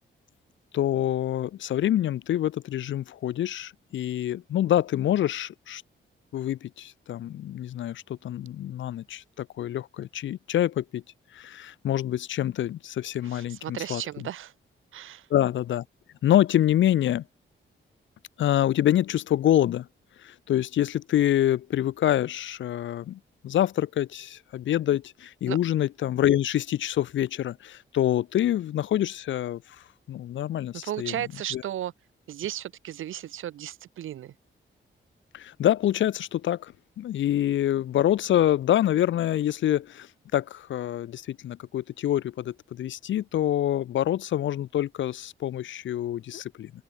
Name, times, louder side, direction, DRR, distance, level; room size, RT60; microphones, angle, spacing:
voice 1, 0.7-5.8 6.3-11.0 11.3-14.0 15.3-15.8 16.2-17.2 18.4-19.9 20.2-29.6 30.1-31.1 31.5-31.6 35.3-40.1 40.3-46.7, left 12 dB, 65° left, 0.4 m, -26 dB
voice 2, 13.2-14.5 14.9-15.3 25.5-25.6 30.8-31.9 32.3-34.3, right 12 dB, 75° right, 0.5 m, -35 dB
open air
wide cardioid pair, 110°, 21 cm